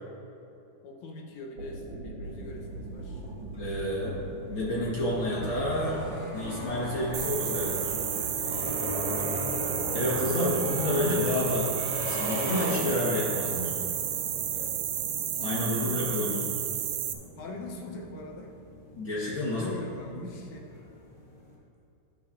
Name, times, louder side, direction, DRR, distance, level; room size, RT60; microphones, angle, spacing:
voice 1, 0.8-3.2 14.5-14.8 15.5-16.4 17.4-18.6 19.4-20.7, left 2 dB, 75° left, 0 dB, 2.1 m, -43 dB
sound 1, 1.4-21.1, right 1 dB, 70° right, 2.3 m, -44 dB
sound 2, 2.2-21.5, left 1 dB, 20° left, 1.2 m, -38 dB
voice 2, 3.6-4.2 4.5-7.9 9.9-11.7 12.0-13.7 15.4-16.6 18.9-19.7 20.1-20.2, left 1 dB, 55° left, -6 dB, 1.6 m, -29 dB
sound 3, 7.1-17.1, right 10 dB, 90° right, 1.3 m, -32 dB
11.0 x 11.0 x 2.5 m, 2.7 s
omnidirectional pair, 3.6 m